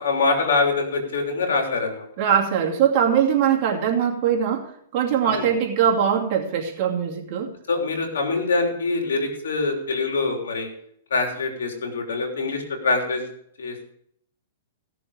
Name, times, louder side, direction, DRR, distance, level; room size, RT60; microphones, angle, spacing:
voice 1, 0.0-2.1 5.3-5.5 7.7-10.7 11.1-13.2 13.6-13.8, left 3 dB, 90° left, 3 dB, 3.3 m, -24 dB
voice 2, 2.2-7.5, right 8 dB, 40° right, -1 dB, 2.6 m, -21 dB
16.5 x 6.9 x 4.9 m, 0.68 s
hypercardioid pair, 150°, 0 cm